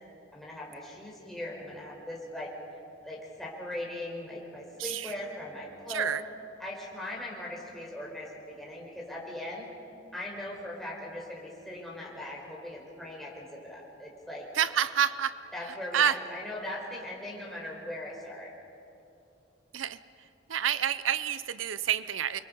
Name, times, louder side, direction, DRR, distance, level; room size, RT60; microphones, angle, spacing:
voice 1, 0.3-2.5 3.0-6.1 6.6-9.7 10.1-14.5 15.5-18.5, left 1 dB, ahead, -4 dB, 4.8 m, -39 dB
voice 2, 4.8-5.1 5.9-6.2 14.5-15.4 15.9-16.2 19.7-20.0 20.5-22.4, right 9 dB, 85° right, 15 dB, 0.6 m, -28 dB
29.0 x 23.5 x 5.4 m, 2.7 s
head